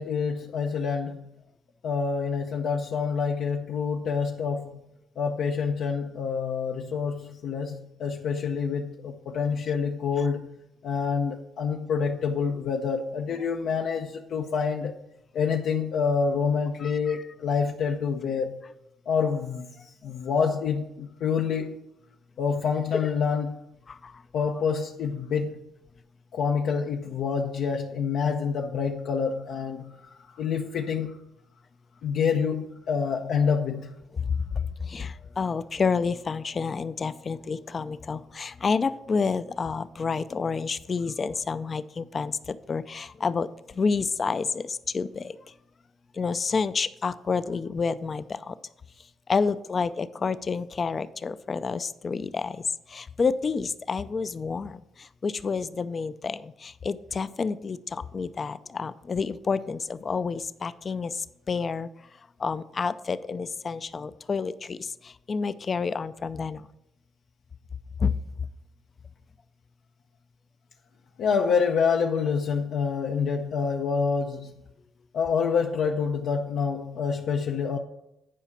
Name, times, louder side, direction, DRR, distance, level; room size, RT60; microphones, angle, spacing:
voice 1, 0.0-1.3 1.8-4.8 5.2-10.6 10.8-14.9 15.3-18.6 19.1-21.8 22.4-23.6 24.3-25.6 26.3-31.2 32.0-33.9 71.2-74.5 75.1-77.8, left 6 dB, 75° left, 0.7 m, -27 dB
voice 2, 16.8-17.2 23.9-24.1 34.3-45.4 46.1-48.5 49.3-52.6 52.9-61.9 62.4-66.7 68.0-68.1, left 5 dB, 40° left, 0.5 m, -29 dB
10.0 x 4.9 x 5.8 m
cardioid pair, 90°, 0 cm